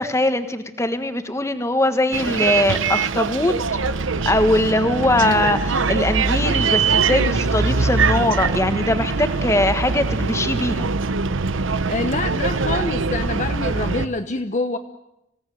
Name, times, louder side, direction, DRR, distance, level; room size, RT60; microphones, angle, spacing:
voice 1, 0.0-3.5 4.2-10.9, left 1 dB, 15° left, 9 dB, 1.4 m, -21 dB
Bus, 2.1-14.1, right 4 dB, 80° right, 0.9 m, -22 dB
voice 2, 11.9-14.8, left 2 dB, 35° left, 7 dB, 1.0 m, -26 dB
26.0 x 17.5 x 9.1 m, 0.85 s
head